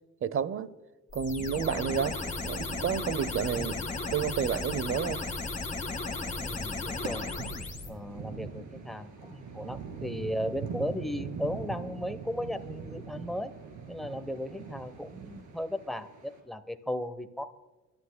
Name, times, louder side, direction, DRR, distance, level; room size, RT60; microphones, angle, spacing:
voice 1, 0.2-0.7 1.1-2.2 2.4-3.7 4.1-5.2, right 7 dB, 45° right, 0.7 m, -30 dB
sound 1, 1.1-7.9, left 3 dB, 25° left, 1.8 m, -35 dB
voice 2, 6.4-7.3 7.8-13.5 13.9-17.5, left 1 dB, ahead, 0.8 m, -36 dB
sound 2, 7.0-16.4, right 6 dB, 80° right, 2.4 m, -42 dB
27.0 x 11.5 x 2.2 m
cardioid pair, 90°, 30 cm